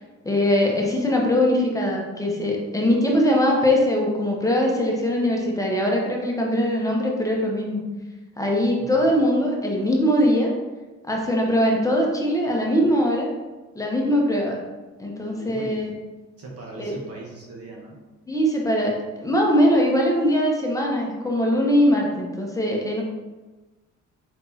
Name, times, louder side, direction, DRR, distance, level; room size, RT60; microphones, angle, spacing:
voice 1, 0.2-7.8 8.4-10.5 11.1-13.3 13.7-14.6 15.0-15.9 16.8-16.9 18.3-18.9 19.2-23.0, equal, 10° left, -1 dB, 0.9 m, -21 dB
voice 2, 15.3-15.8 16.4-18.0, right 3 dB, 55° right, -2 dB, 1.2 m, -39 dB
4.2 x 3.4 x 2.8 m, 1.2 s
cardioid pair, 90°, 30 cm